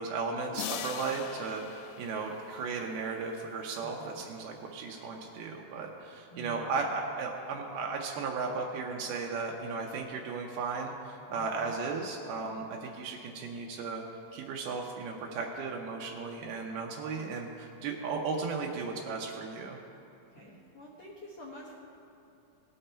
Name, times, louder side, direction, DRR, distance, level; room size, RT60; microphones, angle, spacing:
voice 1, 0.0-14.0 14.3-19.8, right 4 dB, 80° right, 0 dB, 2.6 m, -35 dB
sound 1, 0.5-3.0, left 10 dB, 85° left, 2.6 m, -41 dB
voice 2, 3.8-4.3 6.3-6.8 11.3-11.8 20.3-21.8, equal, 60° left, -5 dB, 1.8 m, -48 dB
18.5 x 6.7 x 4.3 m, 2.8 s
omnidirectional pair, 4.6 m